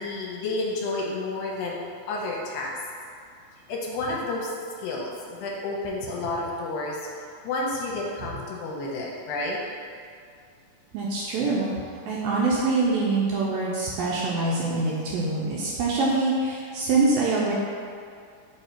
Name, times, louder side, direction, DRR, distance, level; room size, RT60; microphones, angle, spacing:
voice 1, 0.0-1.8 2.1-2.8 3.7-4.5 4.8-7.0 7.4-9.6, left 2 dB, 80° left, -3 dB, 2.4 m, -30 dB
voice 2, 10.9-11.7 12.1-17.5, right 3 dB, 80° right, -4 dB, 2.0 m, -24 dB
7.9 x 2.8 x 4.4 m, 2.3 s
omnidirectional pair, 4.4 m